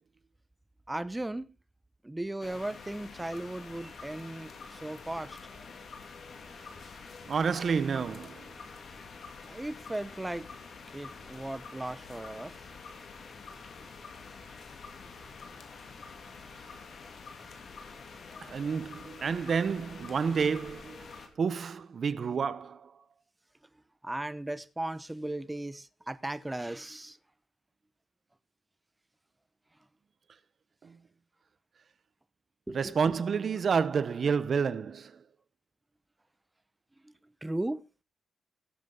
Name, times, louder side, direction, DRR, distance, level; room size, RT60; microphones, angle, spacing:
voice 1, 0.9-1.5 2.0-5.4 9.5-10.5 10.9-12.6 15.2-15.3 24.0-27.2 32.7-33.1 37.0-37.1 37.4-37.8, right 1 dB, 10° right, 0.8 m, -37 dB
sound 1, 2.4-21.3, left 4 dB, 65° left, 2.7 m, -47 dB
voice 2, 7.3-8.5 18.4-21.0 21.4-22.9 30.8-30.9 32.7-35.2, right 6 dB, 55° right, 0.8 m, -29 dB
17.5 x 7.6 x 3.7 m
cardioid pair, 100°, 0 cm